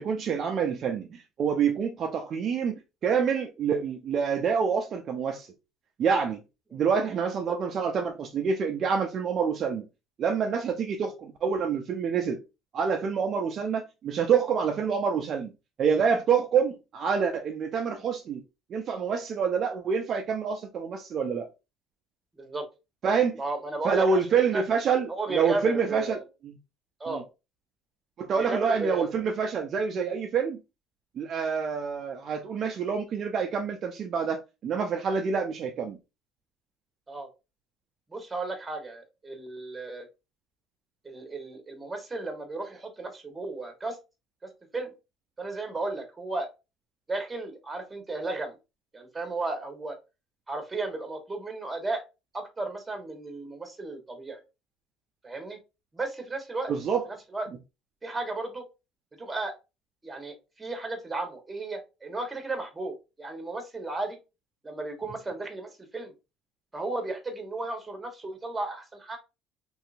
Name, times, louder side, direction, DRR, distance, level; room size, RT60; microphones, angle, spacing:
voice 1, 0.0-5.5 6.0-6.4 6.7-9.8 10.2-12.4 12.7-15.5 15.8-18.4 18.7-21.5 23.0-23.4 23.8-26.2 27.1-27.2 28.2-30.6 31.2-36.0 56.7-57.1, right 6 dB, 50° right, 0.5 m, -27 dB
voice 2, 23.4-24.6 25.1-26.2 27.0-27.2 28.3-29.1 37.1-37.3 38.1-40.1 41.0-44.0 44.4-44.9 45.4-46.5 47.1-48.5 48.9-50.0 50.5-52.0 52.3-54.4 55.2-55.6 55.9-56.7 57.0-57.5 58.0-58.6 59.2-59.5 60.0-64.2 64.6-66.1 66.7-69.2, right 2 dB, 20° right, 1.2 m, -34 dB
3.1 x 2.7 x 2.5 m
supercardioid pair, 90°, 0 cm